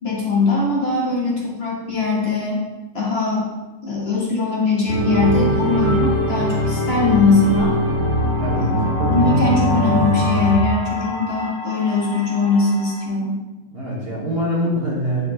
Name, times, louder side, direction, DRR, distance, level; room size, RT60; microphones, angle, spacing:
voice 1, 0.0-2.6 2.9-3.5 3.8-7.8 8.6-13.4, left 3 dB, 45° left, -5 dB, 1.4 m, -21 dB
sound 1, 4.9-10.5, equal, 90° right, 1.6 m, -20 dB
sound 2, 5.1-13.1, left 2 dB, 85° left, 1.2 m, -31 dB
voice 2, 8.4-8.7 13.7-15.3, equal, 45° right, -5 dB, 1.6 m, -24 dB
8.3 x 4.2 x 2.9 m, 1.2 s
omnidirectional pair, 1.5 m